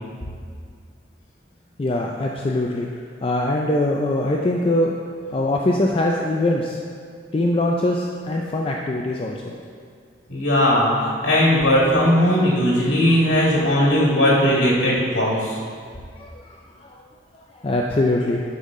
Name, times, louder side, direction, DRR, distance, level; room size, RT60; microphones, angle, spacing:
voice 1, 1.8-2.9 3.2-4.9 5.3-6.8 7.3-9.6 16.2-16.6 16.8-17.0 17.6-18.4, left 1 dB, 30° left, 0 dB, 0.4 m, -22 dB
voice 2, 10.3-15.6, equal, 80° left, -5 dB, 1.8 m, -18 dB
11.0 x 5.4 x 3.7 m, 2.1 s
head